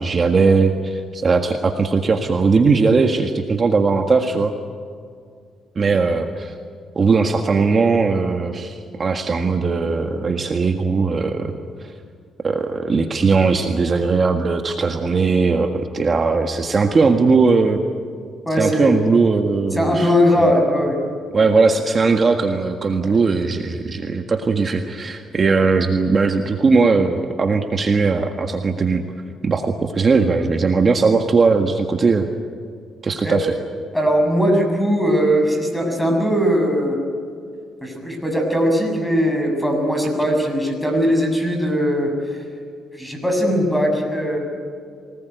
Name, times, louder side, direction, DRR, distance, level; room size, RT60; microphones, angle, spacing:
voice 1, 0.0-4.5 5.7-6.5 6.9-11.5 11.8-11.9 12.4-17.8 18.6-20.1 20.4-20.5 21.3-29.0 29.4-32.3 33.0-33.5, right 4 dB, 40° right, 5 dB, 1.7 m, -18 dB
voice 2, 18.5-18.9 19.7-21.0 23.0-23.1 33.2-33.4 33.9-37.0 37.8-42.4 42.9-44.4, equal, 5° left, 3 dB, 7.2 m, -19 dB
25.0 x 19.0 x 9.3 m, 2.3 s
cardioid pair, 90°, 0 cm